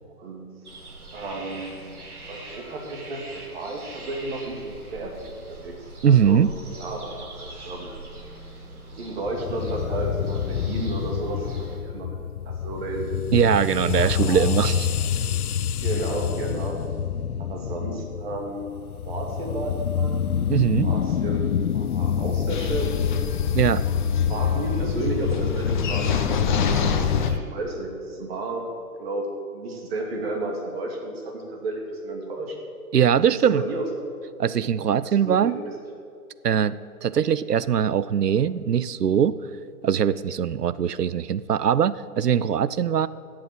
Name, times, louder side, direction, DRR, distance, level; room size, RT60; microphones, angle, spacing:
sound 1, 0.6-11.8, right 2 dB, 70° right, 2.9 m, -42 dB
voice 1, 1.1-1.9 2.3-6.4 6.8-7.9 9.0-11.5 11.8-12.2 12.5-13.2 13.9-14.6 15.8-16.8 17.4-18.7 19.1-20.2 20.8-23.0 24.0-26.2 26.6-28.7 29.0-29.3 29.5-32.6 33.3-33.9 35.0-35.7, right 2 dB, 40° right, 1 dB, 2.5 m, -32 dB
voice 2, 6.0-6.5 13.3-14.9 20.5-20.9 23.5-23.8 32.9-33.6 34.4-35.6 36.4-39.4 39.8-43.1, right 8 dB, 85° right, 17 dB, 0.6 m, -21 dB
sound 2, 9.2-27.4, left 8 dB, 70° left, 0.5 m, -27 dB
sound 3, 22.5-27.3, left 5 dB, 30° left, 0.8 m, -27 dB
11.5 x 7.7 x 7.7 m, 2.4 s
figure-of-eight pair, 135°, 46 cm